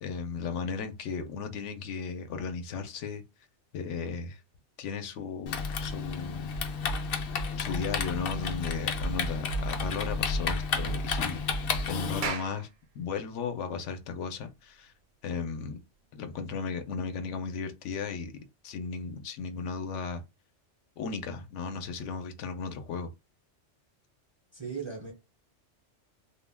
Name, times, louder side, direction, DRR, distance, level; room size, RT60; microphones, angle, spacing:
voice 1, 0.0-3.2 3.7-4.4 4.8-6.5 7.6-11.4 11.9-12.7 12.9-14.9 15.2-15.8 16.1-18.3 18.6-20.2 21.0-23.1, left 5 dB, 85° left, 0.9 m, -35 dB
Typing, 5.5-12.3, left 4 dB, 60° left, 0.7 m, -31 dB
Clapping, 12.2-16.9, right 6 dB, 70° right, 0.8 m, -42 dB
voice 2, 24.5-25.1, right 5 dB, 35° right, 0.5 m, -37 dB
2.3 x 2.1 x 3.3 m
omnidirectional pair, 1.2 m